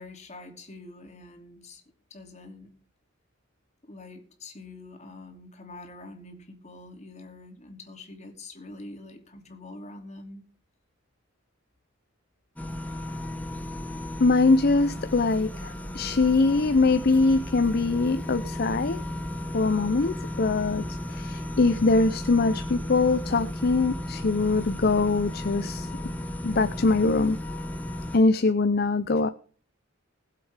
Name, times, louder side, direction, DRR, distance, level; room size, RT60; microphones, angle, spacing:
voice 1, 0.0-1.8 2.1-2.7 3.8-10.4, left 2 dB, 35° left, 2.7 m, -45 dB
sound 1, 12.6-28.2, left 1 dB, 10° left, 1.3 m, -35 dB
voice 2, 14.2-19.0 19.5-25.9 26.4-27.4 28.1-29.3, left 3 dB, 50° left, 0.6 m, -23 dB
21.0 x 7.6 x 3.4 m
head